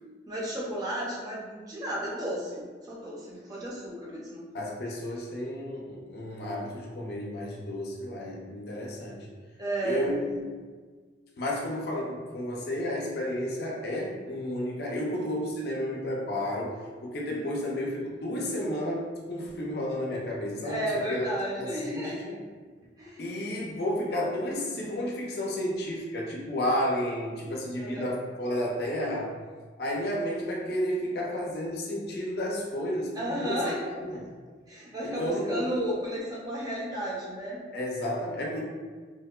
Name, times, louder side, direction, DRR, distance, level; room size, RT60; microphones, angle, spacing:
voice 1, 0.3-4.4 9.6-10.1 17.3-17.5 20.6-22.3 23.0-23.3 27.8-28.1 33.1-33.8 34.7-37.6, right 1 dB, 20° right, -5 dB, 0.4 m, -33 dB
voice 2, 4.5-9.3 9.8-10.6 11.4-21.3 21.6-22.4 23.2-29.4 29.8-34.3 35.0-35.6 37.7-38.6, left 1 dB, 60° left, -2 dB, 0.4 m, -32 dB
2.7 x 2.1 x 2.2 m, 1.5 s
head